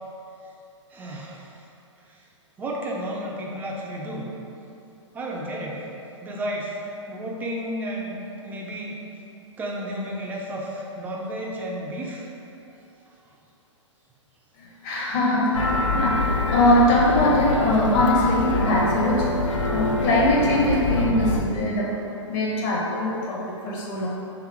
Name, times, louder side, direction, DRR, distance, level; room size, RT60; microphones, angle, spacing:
voice 1, 0.9-1.5 2.1-2.2 2.6-4.3 5.1-5.8 6.2-6.8 7.1-8.1 8.4-9.0 9.6-12.3, right 1 dB, 10° right, -2 dB, 0.5 m, -32 dB
voice 2, 14.6-19.3 19.7-22.0 22.3-24.1, left 1 dB, 30° left, -4 dB, 0.9 m, -22 dB
sound 1, 15.5-21.4, left 2 dB, 80° left, 0.5 m, -25 dB
3.3 x 3.0 x 4.7 m, 2.8 s
figure-of-eight pair, 115°, 16 cm